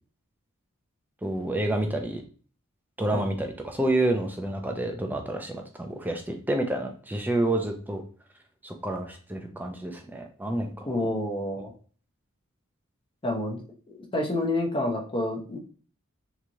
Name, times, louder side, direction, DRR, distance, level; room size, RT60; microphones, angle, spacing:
voice 1, 1.2-2.2 3.0-8.0 8.6-11.0, right 1 dB, 10° right, 4 dB, 0.5 m, -29 dB
voice 2, 10.9-11.7 13.2-15.6, left 1 dB, 25° left, 1 dB, 0.7 m, -29 dB
3.5 x 3.0 x 2.6 m, 0.41 s
head